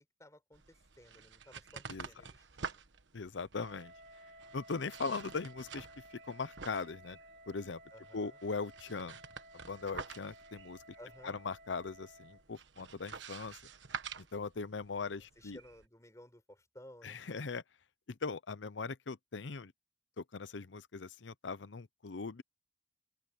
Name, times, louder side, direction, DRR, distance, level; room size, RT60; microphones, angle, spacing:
voice 1, 0.0-2.8 7.9-8.4 11.0-11.4 15.0-17.4, left 1 dB, 15° left, 5.1 m, -57 dB
sound 1, 0.5-15.9, right 5 dB, 85° right, 1.3 m, -49 dB
voice 2, 3.1-3.9 4.5-5.9 6.3-7.2 7.5-7.8 8.1-9.2 9.5-11.0 11.2-13.6 14.2-15.6 17.0-17.6 18.1-19.7 20.2-22.4, left 4 dB, 85° left, 0.7 m, -40 dB
Wind instrument woodwind instrument, 3.6-12.5, right 1 dB, 55° right, 3.5 m, -56 dB
open air
head